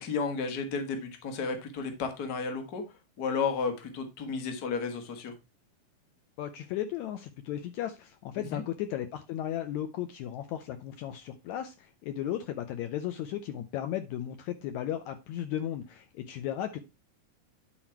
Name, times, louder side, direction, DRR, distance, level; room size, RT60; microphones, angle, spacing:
voice 1, 0.0-2.8 3.2-5.3 8.5-8.6, left 5 dB, 40° left, 6 dB, 1.4 m, -32 dB
voice 2, 6.4-16.8, left 11 dB, 75° left, 8 dB, 1.8 m, -35 dB
10.0 x 4.2 x 4.3 m, 0.25 s
omnidirectional pair, 3.7 m